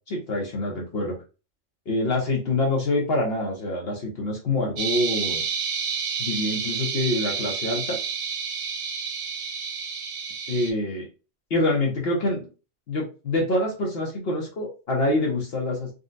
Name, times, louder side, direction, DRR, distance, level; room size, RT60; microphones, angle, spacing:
voice 1, 0.1-1.1 1.9-5.4 6.2-8.0 10.5-11.1 11.5-12.5 12.9-15.9, left 2 dB, 55° left, -1 dB, 1.0 m, -26 dB
sound 1, 4.8-10.7, right 6 dB, 70° right, 0.9 m, -30 dB
3.8 x 2.3 x 2.5 m, 0.32 s
omnidirectional pair, 1.3 m